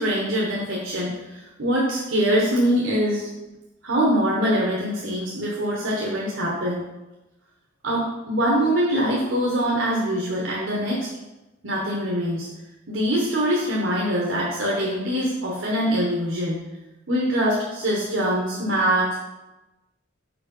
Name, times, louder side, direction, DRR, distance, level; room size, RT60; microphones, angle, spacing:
voice 1, 0.0-3.3 3.8-6.8 7.8-11.1 11.6-12.5 12.9-16.6 17.1-19.2, equal, 75° right, -4 dB, 1.1 m, -23 dB
5.0 x 4.7 x 5.3 m, 1.0 s
head